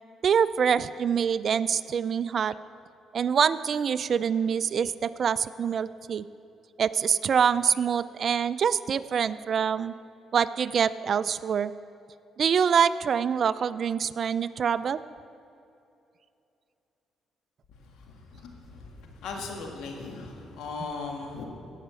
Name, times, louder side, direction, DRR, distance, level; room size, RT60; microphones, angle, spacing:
voice 1, 0.2-2.5 3.1-6.2 6.8-9.9 10.3-11.7 12.4-15.0, right 7 dB, 55° right, 16 dB, 0.3 m, -25 dB
voice 2, 18.1-21.4, left 4 dB, 85° left, 2 dB, 1.7 m, -38 dB
17.0 x 5.7 x 6.9 m, 2.7 s
cardioid pair, 90°, 0 cm